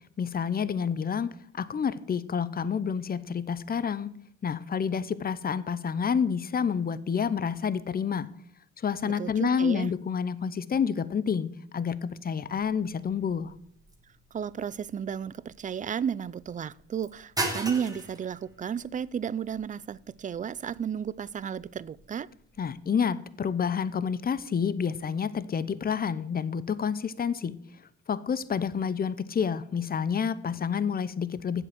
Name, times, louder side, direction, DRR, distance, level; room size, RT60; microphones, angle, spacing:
voice 1, 0.2-4.1 4.4-8.3 8.8-13.5 22.6-27.5 28.1-31.7, left 6 dB, 30° left, 16 dB, 0.7 m, -29 dB
voice 2, 9.0-9.9 14.3-22.3, right 8 dB, 25° right, 21 dB, 0.4 m, -33 dB
sound 1, 12.6-22.7, right 2 dB, 10° right, 1.8 m, -40 dB
7.7 x 7.6 x 7.7 m, 0.68 s
cardioid pair, 90°, 30 cm